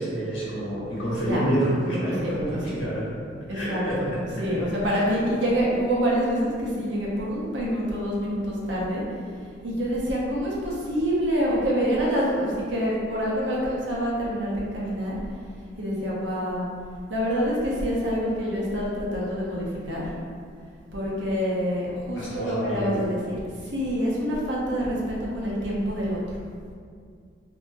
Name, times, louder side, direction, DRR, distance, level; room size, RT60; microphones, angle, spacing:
voice 1, 0.0-3.1 3.5-4.6 4.8-5.0 22.1-23.0, right 1 dB, 85° left, -8 dB, 1.2 m, -28 dB
voice 2, 1.2-1.5 2.2-2.8 3.5-4.1 4.3-9.0 9.6-15.2 15.8-16.7 17.1-20.1 20.9-26.2, equal, 65° right, -5 dB, 0.8 m, -26 dB
3.7 x 2.8 x 2.6 m, 2.2 s
head